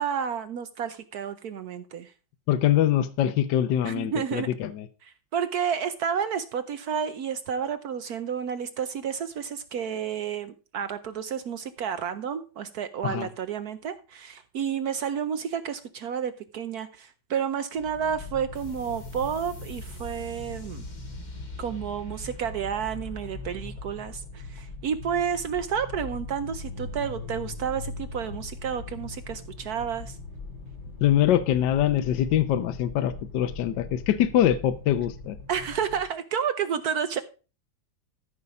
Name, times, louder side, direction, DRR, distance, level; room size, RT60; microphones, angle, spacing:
voice 1, 0.0-2.1 3.8-4.5 5.0-20.8 21.6-30.2 35.5-37.2, right 7 dB, 65° right, 1.0 m, -31 dB
voice 2, 2.5-4.7 13.0-13.3 31.0-35.4, left 11 dB, 70° left, 1.4 m, -23 dB
sound 1, 17.7-36.1, left 3 dB, 85° left, 5.7 m, -41 dB
sound 2, 18.5-25.7, right 1 dB, 25° left, 1.4 m, -45 dB
13.5 x 5.5 x 4.8 m
omnidirectional pair, 2.1 m